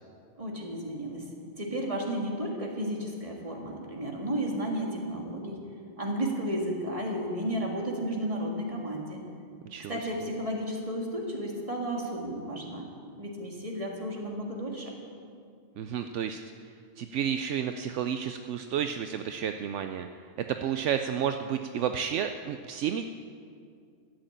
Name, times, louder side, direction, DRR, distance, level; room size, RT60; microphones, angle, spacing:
voice 1, 0.4-1.2 1.6-5.6 6.0-9.2 9.9-12.9 13.2-14.9, equal, 25° right, -1 dB, 2.0 m, -33 dB
voice 2, 15.8-16.4 17.0-20.1 20.6-23.1, right 8 dB, 75° right, 7 dB, 0.9 m, -31 dB
13.0 x 7.8 x 8.7 m, 2.3 s
omnidirectional pair, 1.3 m